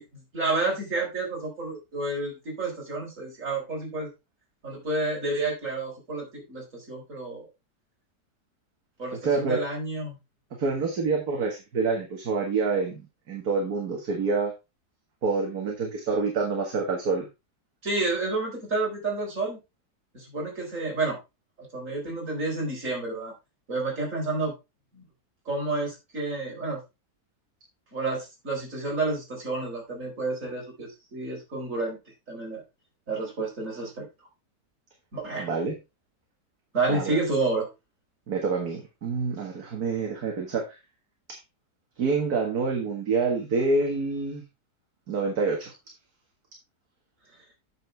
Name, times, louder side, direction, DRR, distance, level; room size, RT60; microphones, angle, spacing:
voice 1, 0.1-4.1 4.6-7.4 9.0-10.2 17.8-19.6 20.1-21.2 21.7-23.3 23.7-24.5 24.9-25.0 25.5-26.8 27.9-32.0 32.3-32.6 33.1-34.1 35.1-35.5 36.7-37.7, right 3 dB, 50° right, -1 dB, 4.5 m, -30 dB
voice 2, 9.1-9.6 10.5-13.0 13.3-14.5 15.2-17.3 35.4-35.8 36.9-37.2 38.3-40.6 41.3-41.4 42.0-44.4 45.1-45.7, right 4 dB, 65° right, 0 dB, 2.2 m, -27 dB
9.0 x 6.7 x 3.3 m, 0.24 s
omnidirectional pair, 1.8 m